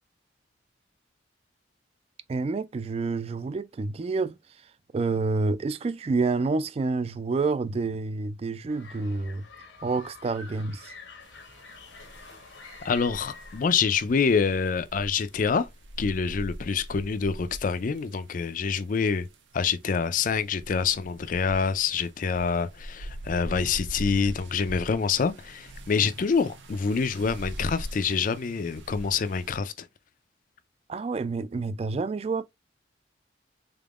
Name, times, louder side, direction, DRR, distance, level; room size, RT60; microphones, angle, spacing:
voice 1, 2.3-4.4 4.9-9.4 9.8-10.9 30.9-32.4, right 3 dB, 35° right, 0.3 m, -28 dB
sound 1, 8.7-14.2, left 3 dB, 75° left, 0.9 m, -48 dB
sound 2, 11.2-29.6, right 1 dB, 80° right, 0.7 m, -42 dB
voice 2, 12.8-15.7 16.0-19.3 19.5-29.9, left 5 dB, 45° left, 0.4 m, -26 dB
3.8 x 3.5 x 2.3 m
head